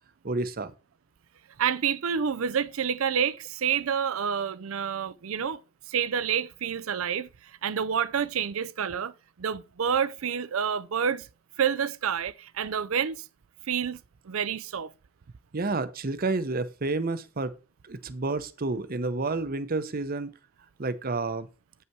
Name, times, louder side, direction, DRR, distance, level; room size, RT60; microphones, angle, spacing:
voice 1, 0.2-0.7 15.5-17.5 17.9-20.3 20.8-21.5, right 3 dB, 45° right, 0.8 m, -30 dB
voice 2, 1.6-5.6 5.9-9.1 9.4-11.3 11.6-13.3 13.7-14.9, right 7 dB, 80° right, 0.5 m, -28 dB
8.7 x 5.6 x 4.6 m
head